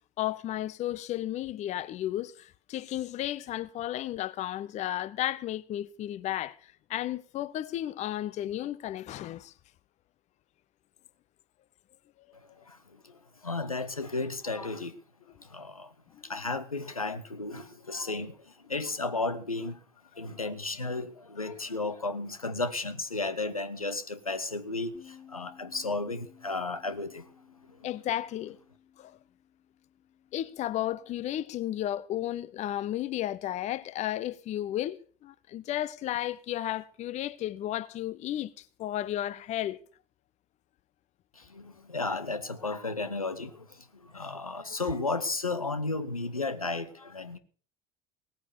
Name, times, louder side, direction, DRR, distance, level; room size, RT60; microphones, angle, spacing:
voice 1, 0.2-9.5 16.1-16.2 27.8-28.6 29.0-29.2 30.3-39.8, left 13 dB, 40° left, 0.7 m, -33 dB
voice 2, 12.3-15.0 15.4-15.9 16.2-19.8 20.1-27.3 27.7-27.8 41.3-47.4, left 3 dB, 85° left, 1.0 m, -34 dB
Bass guitar, 24.9-31.2, left 9 dB, 25° left, 1.9 m, -57 dB
18.0 x 9.6 x 6.8 m
figure-of-eight pair, 60°, 18 cm